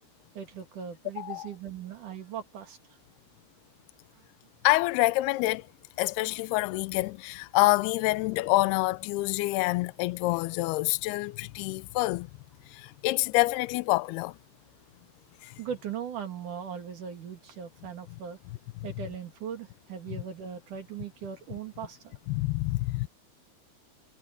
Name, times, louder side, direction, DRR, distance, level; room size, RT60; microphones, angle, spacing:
voice 1, 0.3-2.8 15.6-18.4 18.8-22.2, right 8 dB, 50° right, 3.3 m, -39 dB
voice 2, 1.2-1.5 4.6-5.7 6.0-12.3 12.7-14.3 15.4-15.5 22.3-23.1, left 20 dB, 80° left, 2.4 m, -27 dB
omnidirectional pair, 5.0 m